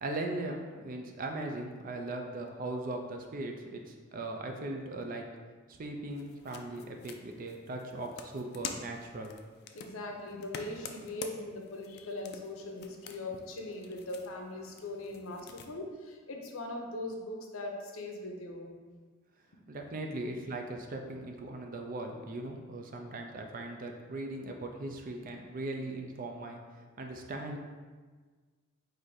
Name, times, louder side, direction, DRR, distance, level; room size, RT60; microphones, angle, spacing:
voice 1, 0.0-5.2 5.7-9.3 19.7-26.6 27.0-27.6, right 2 dB, 40° right, 3 dB, 0.4 m, -39 dB
sound 1, 6.1-15.7, left 6 dB, 50° left, 0.3 m, -48 dB
voice 2, 9.7-19.0, left 2 dB, 80° left, 2 dB, 0.7 m, -40 dB
4.0 x 2.7 x 4.7 m, 1.4 s
head